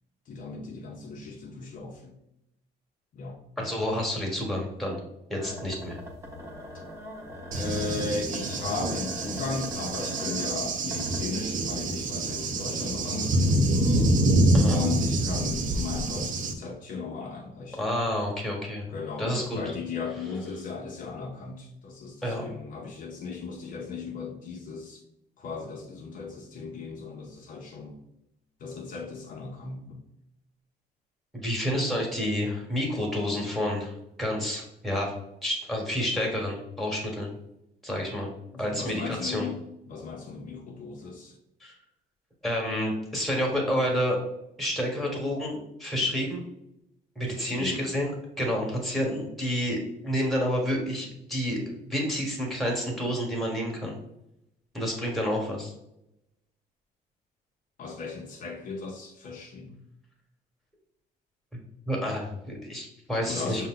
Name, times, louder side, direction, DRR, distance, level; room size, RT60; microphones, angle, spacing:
voice 1, 0.3-2.1 3.1-3.4 7.5-13.8 14.7-17.9 18.9-25.0 25.4-28.0 28.6-30.0 38.5-39.6 39.8-41.3 47.4-47.9 57.8-59.8 63.2-63.7, left 4 dB, 55° left, 0.6 m, -36 dB
voice 2, 3.6-5.0 5.3-6.0 14.5-14.8 17.8-18.8 19.2-19.6 22.2-22.4 31.3-35.1 35.4-37.3 37.8-38.3 38.6-39.4 41.6-41.7 42.4-44.2 44.6-46.4 47.1-48.1 48.4-54.0 54.7-55.7 61.9-63.7, equal, ahead, 1.3 m, -29 dB
sound 1, 5.4-11.7 12.1-12.2, left 1 dB, 15° right, 1.0 m, -41 dB
Cricket / Thunder, 7.5-16.5, right 1 dB, 50° right, 0.6 m, -26 dB
5.3 x 2.1 x 3.8 m
cardioid pair, 110°, 17 cm